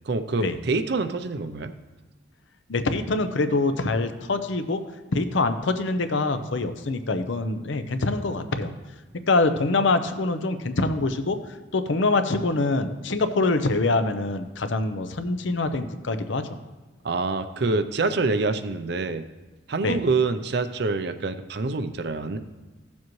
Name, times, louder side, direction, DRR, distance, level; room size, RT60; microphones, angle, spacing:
voice 1, 0.1-1.7 17.0-19.2 19.7-22.4, right 3 dB, 55° right, 9 dB, 0.5 m, -26 dB
voice 2, 2.7-4.8 5.1-8.7 9.3-11.4 11.7-16.4 19.8-20.0, left 3 dB, 70° left, 9 dB, 0.7 m, -24 dB
15.0 x 7.3 x 3.1 m, 1.2 s
head